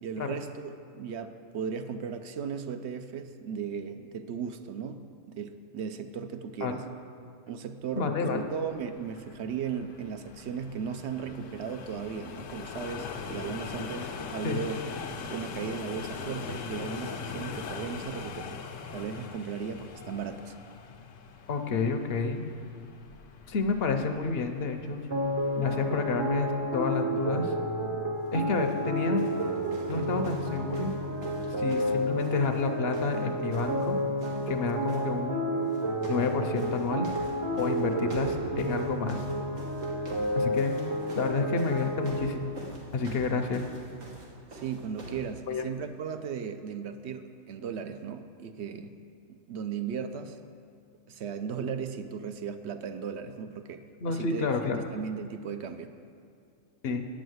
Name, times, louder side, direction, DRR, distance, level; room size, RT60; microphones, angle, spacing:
voice 1, 0.0-6.8 7.5-14.8 15.3-18.6 18.9-20.5 44.5-49.0 49.3-50.4 51.1-54.5 54.9-55.9, right 7 dB, 65° right, 9 dB, 0.8 m, -36 dB
voice 2, 8.0-8.4 14.4-14.6 21.5-22.5 23.5-25.0 25.6-27.5 28.3-29.2 29.9-30.9 31.6-34.0 34.5-35.6 36.1-37.1 37.6-39.2 40.4-40.7 41.2-42.5 42.9-43.6 45.5-45.6 54.0-54.8 56.8-57.1, left 4 dB, 55° left, 6 dB, 0.8 m, -29 dB
sound 1, 8.4-26.7, left 5 dB, 75° left, 1.0 m, -42 dB
sound 2, 25.1-42.2, equal, 30° right, 0.7 m, -31 dB
Grass Footsteps, 28.5-28.8 29.2-32.7 32.9-33.9 34.2-35.0 35.7-36.3 36.6-45.3 46.1-46.2, right 1 dB, 90° right, 2.0 m, -46 dB
9.2 x 6.3 x 7.9 m, 2.3 s
omnidirectional pair, 1.3 m